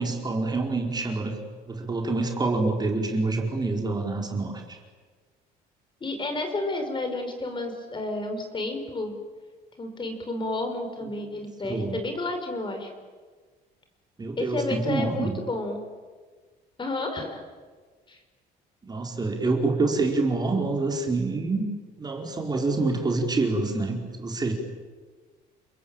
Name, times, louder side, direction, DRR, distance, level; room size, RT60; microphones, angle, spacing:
voice 1, 0.0-1.4 1.7-4.8 11.6-12.0 14.2-15.3 18.8-21.7 22.0-24.5, right 3 dB, 25° right, 1 dB, 4.6 m, -26 dB
voice 2, 6.0-9.2 9.8-12.9 14.4-15.8 16.8-17.4 18.1-18.2, left 2 dB, 30° left, 5 dB, 5.3 m, -31 dB
29.5 x 21.5 x 9.1 m, 1.4 s
cardioid pair, 110°, 17 cm